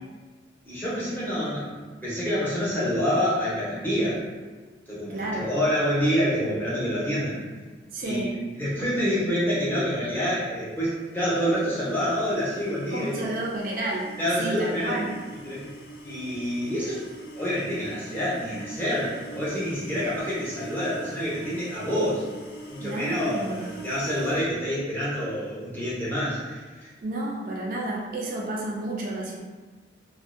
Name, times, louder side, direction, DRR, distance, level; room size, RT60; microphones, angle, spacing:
voice 1, 0.7-4.2 4.9-7.5 8.0-13.3 14.2-15.0 15.4-15.7 16.0-17.0 17.3-22.3 22.7-26.9, equal, 10° left, -8 dB, 0.6 m, -27 dB
voice 2, 5.1-5.5 7.9-8.3 12.9-14.1 14.4-15.1 22.8-23.6 27.0-29.4, right 1 dB, 50° right, -2 dB, 0.3 m, -31 dB
sound 1, 10.6-24.6, right 2 dB, 55° left, 0.3 m, -44 dB
2.5 x 2.0 x 2.5 m, 1.3 s
head